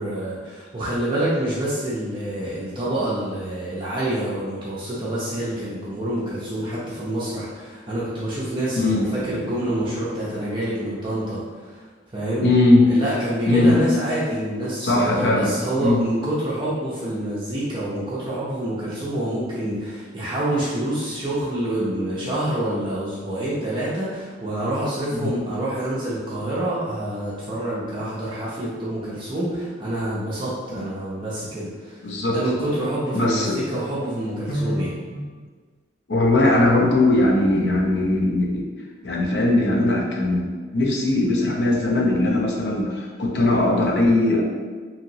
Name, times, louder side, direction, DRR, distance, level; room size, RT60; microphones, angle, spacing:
voice 1, 0.0-11.9 12.1-12.5 12.8-35.0, right 1 dB, 25° right, -8 dB, 0.5 m, -27 dB
voice 2, 8.8-9.4 12.4-12.9 13.5-13.8 14.8-15.5 15.8-16.0 25.2-25.3 30.8-30.9 32.0-32.4 33.1-33.6 34.5-34.8 35.1-35.3 36.1-38.7 39.0-44.4, left 2 dB, 65° left, 0 dB, 0.5 m, -20 dB
2.9 x 2.8 x 2.7 m, 1.5 s
head